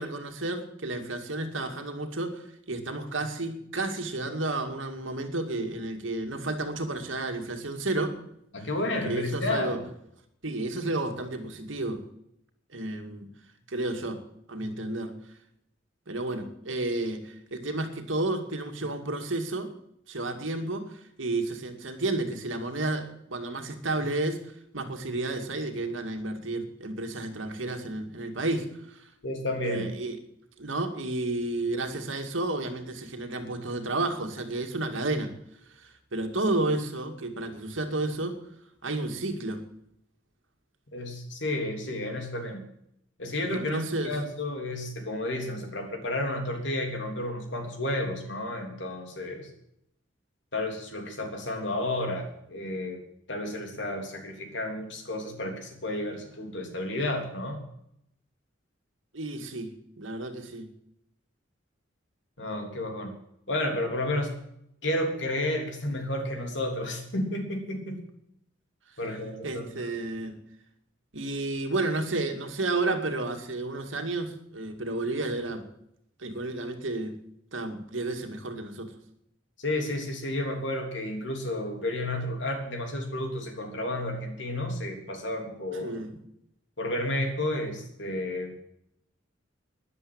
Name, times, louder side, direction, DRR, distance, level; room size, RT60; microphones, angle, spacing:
voice 1, 0.0-8.1 8.6-8.7 9.0-9.8 10.4-12.0 12.7-13.3 13.7-14.2 14.5-15.2 16.1-19.7 20.1-20.9 21.2-24.4 24.7-29.1 29.6-30.2 30.6-35.3 35.8-38.4 38.8-39.6 43.5-44.2 59.1-60.7 69.4-70.4 71.1-75.7 76.2-77.2 77.5-78.9 85.8-86.2, right 2 dB, 90° right, 6 dB, 2.2 m, -31 dB
voice 2, 8.5-9.8 29.2-29.9 40.9-42.6 43.2-49.5 50.5-53.0 53.3-57.6 62.4-63.1 63.5-64.3 64.8-68.0 69.0-69.9 79.6-85.9 86.8-88.6, left 1 dB, 65° left, 4 dB, 3.2 m, -31 dB
12.5 x 10.5 x 8.7 m, 0.76 s
head